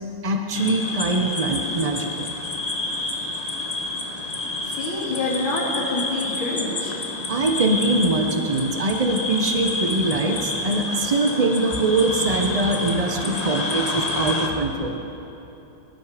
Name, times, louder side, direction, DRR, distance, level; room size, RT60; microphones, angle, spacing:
voice 1, 0.2-2.3 7.3-15.0, right 2 dB, 75° right, 3 dB, 0.3 m, -23 dB
sound 1, 0.5-14.5, left 2 dB, 30° left, 0.7 m, -29 dB
voice 2, 4.6-7.0, left 2 dB, 90° left, -3 dB, 3.2 m, -27 dB
22.0 x 11.5 x 5.0 m, 3.0 s
omnidirectional pair, 2.2 m